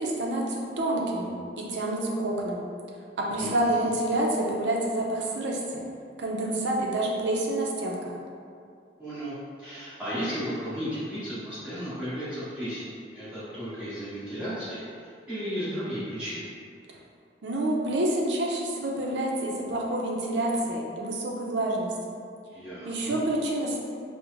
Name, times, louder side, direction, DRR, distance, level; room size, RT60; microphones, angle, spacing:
voice 1, 0.0-2.6 3.2-5.8 6.2-8.1 17.4-22.1 22.8-23.8, right 1 dB, 80° right, -1 dB, 0.5 m, -28 dB
voice 2, 3.3-3.9 9.0-12.8 13.1-16.5 22.5-23.1, equal, 5° right, -16 dB, 1.4 m, -34 dB
4.5 x 2.1 x 2.5 m, 2.4 s
head